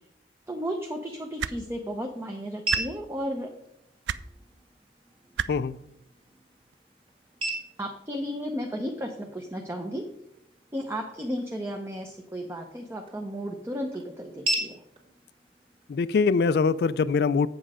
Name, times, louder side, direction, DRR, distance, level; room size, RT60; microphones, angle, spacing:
voice 1, 0.5-3.5 7.8-10.0 10.7-14.8, equal, 15° right, 2 dB, 0.7 m, -34 dB
sound 1, 0.9-16.9, right 2 dB, 30° right, 1.6 m, -39 dB
sound 2, 1.4-1.6 2.7-2.8 4.1-4.2 5.4-5.5 6.7-6.8, right 8 dB, 90° right, 0.4 m, -29 dB
voice 2, 15.9-17.5, left 5 dB, 65° left, 17 dB, 0.3 m, -23 dB
7.9 x 7.3 x 4.9 m, 0.79 s
head